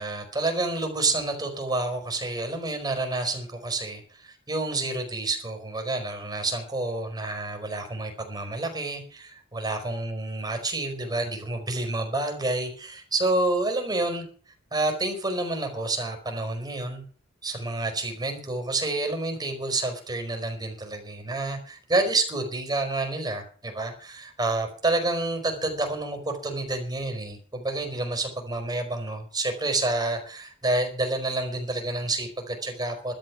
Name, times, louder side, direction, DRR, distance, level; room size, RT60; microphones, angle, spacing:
voice 1, 0.0-14.2 14.7-17.0 17.4-33.1, right 2 dB, 20° right, 4 dB, 4.9 m, -29 dB
13.0 x 12.5 x 6.3 m, 0.43 s
head